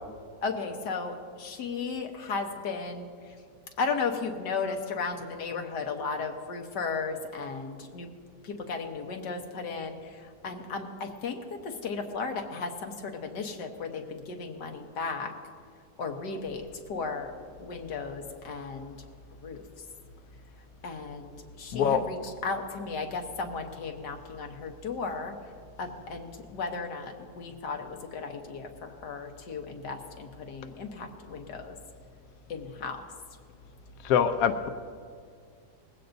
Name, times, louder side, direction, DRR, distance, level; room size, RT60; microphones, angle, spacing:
voice 1, 0.4-3.1 3.8-8.1 8.4-15.3 16.0-17.3 17.6-19.0 19.4-19.6 20.8-25.4 25.8-31.8 32.5-33.0, left 4 dB, 85° left, 3 dB, 1.7 m, -35 dB
voice 2, 34.0-34.7, left 7 dB, 65° left, 8 dB, 1.0 m, -24 dB
20.0 x 16.0 x 2.6 m, 2.1 s
omnidirectional pair, 1.8 m